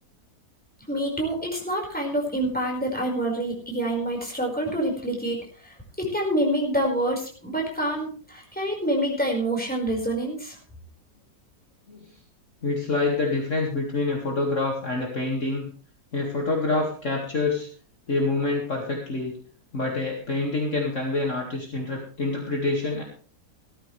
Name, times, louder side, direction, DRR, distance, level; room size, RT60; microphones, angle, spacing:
voice 1, 0.9-10.6, right 1 dB, 5° left, 0 dB, 5.0 m, -27 dB
voice 2, 12.6-15.7 16.1-17.7 18.1-19.3 19.7-23.0, left 3 dB, 45° left, -1 dB, 2.5 m, -26 dB
17.5 x 13.5 x 3.4 m, 0.41 s
omnidirectional pair, 1.9 m